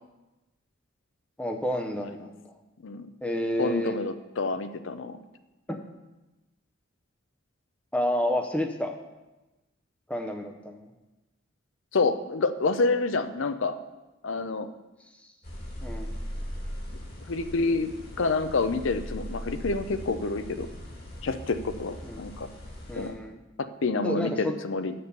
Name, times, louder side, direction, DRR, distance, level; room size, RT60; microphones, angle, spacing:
voice 1, 1.4-2.4 3.2-4.0 7.9-8.9 10.1-10.9 15.8-16.1 22.0-22.2 22.9-23.4 24.0-24.5, equal, 5° left, 3 dB, 0.6 m, -30 dB
voice 2, 3.6-5.2 11.9-13.8 14.2-14.7 17.3-17.9 18.2-20.7 21.2-22.5 22.9-23.1 23.6-24.9, left 3 dB, 65° left, 11 dB, 0.6 m, -28 dB
sound 1, 15.4-23.1, equal, 50° left, 2.2 m, -39 dB
7.0 x 6.8 x 6.7 m, 1.1 s
head